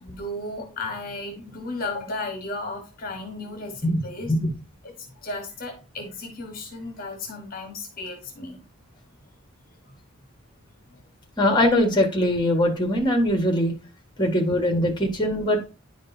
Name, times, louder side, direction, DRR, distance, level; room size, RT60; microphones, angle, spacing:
voice 1, 0.0-4.3 4.8-4.9 5.2-8.6, left 2 dB, 40° left, 3 dB, 1.2 m, -34 dB
voice 2, 11.4-13.7 14.2-15.7, left 1 dB, 20° left, 4 dB, 1.5 m, -21 dB
10.0 x 5.1 x 2.7 m, 0.31 s
head